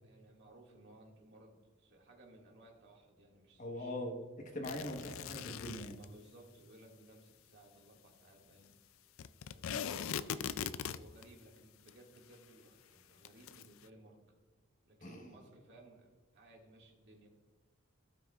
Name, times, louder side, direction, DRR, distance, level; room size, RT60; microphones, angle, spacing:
voice 1, 0.0-3.9 5.9-8.8 9.5-10.5 10.9-14.4 14.8-17.3, right 1 dB, 55° right, -1 dB, 2.1 m, -59 dB
voice 2, 3.6-5.9 15.0-15.3, left 1 dB, 40° left, 2 dB, 1.3 m, -42 dB
sound 1, 4.6-6.0 9.2-11.2 11.9-12.0 12.2-12.3 13.2-13.7, left 8 dB, 70° left, 0.4 m, -40 dB
17.0 x 6.2 x 2.4 m, 1.4 s
head